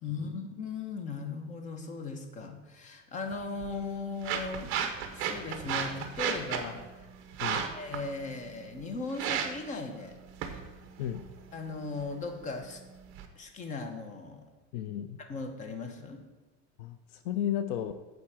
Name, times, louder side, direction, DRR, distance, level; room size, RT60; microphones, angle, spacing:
voice 1, 0.0-4.7 5.1-7.1 7.5-10.2 11.5-12.8 13.4-14.5 15.2-16.2, left 4 dB, 20° left, 5 dB, 0.9 m, -38 dB
sound 1, 3.3-13.3, right 7 dB, 40° right, 0.9 m, -37 dB
voice 2, 14.7-15.2 16.8-17.9, left 10 dB, 60° left, 10 dB, 0.6 m, -33 dB
9.4 x 4.1 x 7.4 m, 1.1 s
supercardioid pair, 165°, 34 cm